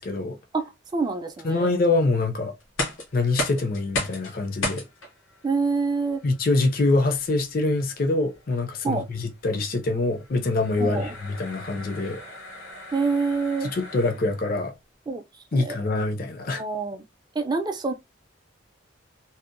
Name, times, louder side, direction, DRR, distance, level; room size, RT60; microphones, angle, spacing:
voice 1, 0.0-0.4 1.4-2.5 3.1-4.8 6.2-12.2 13.6-14.7 15.5-16.6, left 2 dB, 45° left, 0.4 m, -25 dB
voice 2, 0.5-1.7 5.4-6.2 8.8-9.1 10.8-11.1 12.9-13.7 15.1-15.2 15.5-15.8 16.5-17.0 17.4-17.9, right 4 dB, 20° right, 0.3 m, -26 dB
sound 1, 2.6-14.5, left 2 dB, 85° left, 0.9 m, -36 dB
2.7 x 2.0 x 2.5 m
head